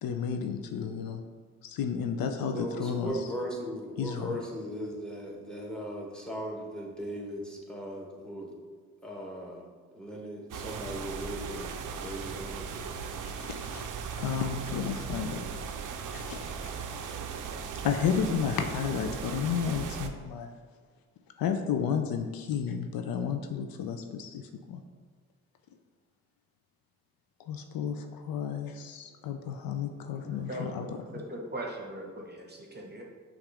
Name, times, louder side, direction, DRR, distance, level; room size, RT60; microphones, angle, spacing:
voice 1, 0.0-1.2 1.6-3.3 4.0-4.4 13.4-13.9 14.2-15.5 16.1-16.4 17.8-20.5 21.4-24.8 27.5-31.0, left 7 dB, 65° left, 5 dB, 0.5 m, -32 dB
voice 2, 2.5-8.5 9.0-9.7 9.9-11.8 12.0-12.7, equal, ahead, -1 dB, 1.2 m, -38 dB
sound 1, 10.5-20.1, right 6 dB, 55° right, 0.5 m, -38 dB
voice 3, 30.1-33.0, right 1 dB, 25° right, 0 dB, 1.0 m, -40 dB
5.8 x 2.5 x 3.4 m, 1.5 s
hypercardioid pair, 40°, 37 cm